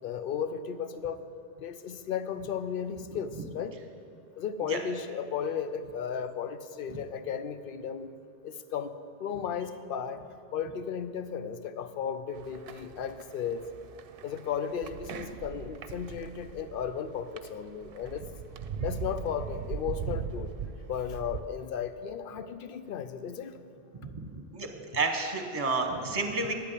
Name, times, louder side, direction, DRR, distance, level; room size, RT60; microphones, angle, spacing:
voice 1, 0.0-1.2 1.6-3.8 4.4-8.1 8.4-8.9 9.2-10.2 10.5-13.7 14.2-18.3 18.8-20.5 20.9-23.6, left 7 dB, 65° left, 11 dB, 0.8 m, -35 dB
sound 1, 12.3-21.4, right 6 dB, 70° right, 0.8 m, -40 dB
voice 2, 24.9-26.5, right 3 dB, 35° right, 4 dB, 1.1 m, -30 dB
9.6 x 8.4 x 8.3 m, 2.5 s
omnidirectional pair, 1.0 m